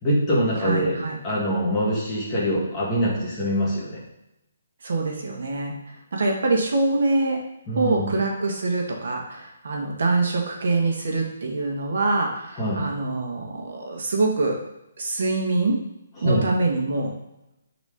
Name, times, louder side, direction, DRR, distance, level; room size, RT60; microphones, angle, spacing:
voice 1, 0.0-1.0 1.2-4.0 7.7-8.1 12.6-12.8 16.2-16.4, equal, 10° left, -7 dB, 1.5 m, -24 dB
voice 2, 0.6-1.2 4.8-5.7 6.1-7.4 7.7-14.6 15.0-15.8 16.2-17.1, right 3 dB, 55° right, 1 dB, 1.4 m, -24 dB
5.1 x 4.1 x 5.1 m, 0.89 s
hypercardioid pair, 175°, 0 cm